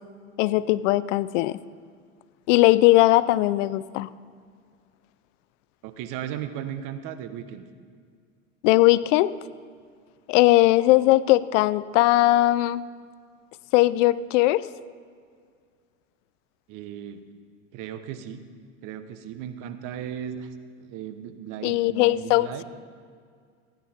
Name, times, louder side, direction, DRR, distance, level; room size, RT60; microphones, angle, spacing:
voice 1, 0.4-1.6 2.5-4.1 8.6-9.3 10.3-12.8 13.7-14.7 21.6-22.6, left 17 dB, 65° left, 18 dB, 0.5 m, -19 dB
voice 2, 5.8-7.7 16.7-17.2 17.7-18.4 18.8-20.5 20.8-22.6, right 9 dB, 50° right, 9 dB, 1.2 m, -36 dB
15.5 x 10.0 x 4.3 m, 2.1 s
hypercardioid pair, 95°, 40 cm